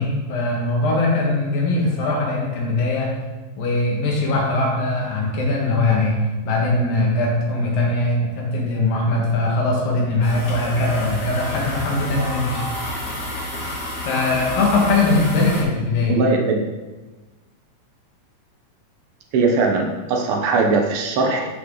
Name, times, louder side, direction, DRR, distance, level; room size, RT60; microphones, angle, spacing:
voice 1, 0.0-3.1 3.6-6.2 6.4-12.6 14.1-16.2, left 2 dB, 80° left, -2 dB, 3.5 m, -21 dB
sound 1, 10.2-15.6, left 1 dB, 20° left, 2.5 m, -30 dB
voice 2, 16.1-16.6 19.3-21.5, right 3 dB, 80° right, 2 dB, 1.2 m, -20 dB
12.5 x 6.3 x 3.9 m, 1.2 s
omnidirectional pair, 3.9 m